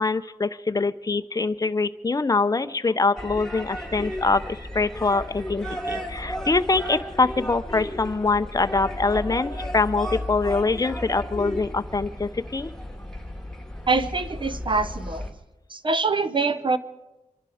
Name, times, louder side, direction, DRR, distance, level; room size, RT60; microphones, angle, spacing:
voice 1, 0.0-12.7, left 3 dB, 30° left, 12 dB, 0.6 m, -24 dB
sound 1, 3.2-15.3, equal, 5° left, 1.9 m, -34 dB
voice 2, 13.9-15.3 15.7-16.8, right 3 dB, 40° right, 11 dB, 0.8 m, -24 dB
26.0 x 11.5 x 4.9 m, 1.0 s
wide cardioid pair, 95°, 13 cm